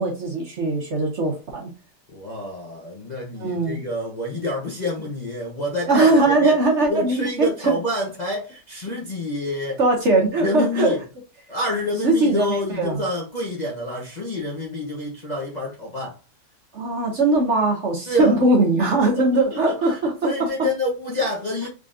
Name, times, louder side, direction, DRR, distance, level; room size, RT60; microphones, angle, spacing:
voice 1, 0.0-1.7 3.3-3.8 5.9-7.5 9.8-10.9 12.0-13.0 16.7-20.7, right 2 dB, 55° right, 1.0 m, -20 dB
voice 2, 2.1-6.1 6.4-6.6 6.9-9.8 10.4-11.0 11.5-16.2 18.1-18.5 19.5-21.7, left 1 dB, 40° left, 0.6 m, -27 dB
3.8 x 3.3 x 2.5 m
omnidirectional pair, 1.8 m